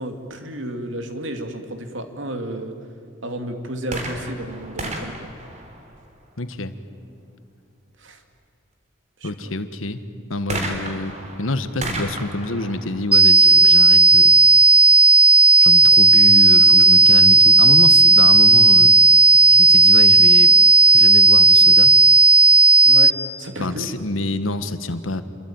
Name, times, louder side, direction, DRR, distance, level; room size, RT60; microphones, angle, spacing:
voice 1, 0.0-2.8 3.2-5.3 8.0-8.2 9.2-9.5 13.4-13.5 22.8-23.9, right 1 dB, 70° right, 6 dB, 2.6 m, -32 dB
sound 1, 3.8-6.4 10.5-14.1 14.9-15.0, right 1 dB, 35° right, 3.6 m, -33 dB
voice 2, 6.4-6.7 9.2-10.0 10.3-14.4 15.6-18.9 19.6-20.5 20.9-22.0 23.6-25.2, left 2 dB, 85° left, 11 dB, 1.5 m, -27 dB
sound 2, 13.1-23.1, right 2 dB, 5° right, 0.7 m, -12 dB
28.0 x 22.5 x 8.9 m, 2.6 s
head